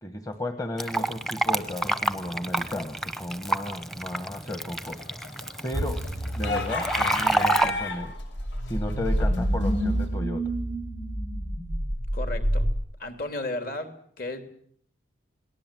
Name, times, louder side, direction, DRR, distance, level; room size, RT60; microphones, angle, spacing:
voice 1, 0.0-5.0 5.6-6.0 6.3-8.1 8.6-10.5, left 1 dB, 20° left, 7 dB, 1.3 m, -34 dB
Fill (with liquid), 0.8-7.7, right 2 dB, ahead, 0.9 m, -28 dB
sound 1, 5.0-8.2 8.5-9.8, left 3 dB, 70° left, 6.5 m, -32 dB
sound 2, 5.7-12.7, equal, 85° left, 5.7 m, -28 dB
voice 2, 12.1-12.7 13.0-14.5, left 2 dB, 45° left, 6 dB, 3.2 m, -34 dB
28.5 x 19.5 x 7.7 m, 0.65 s
head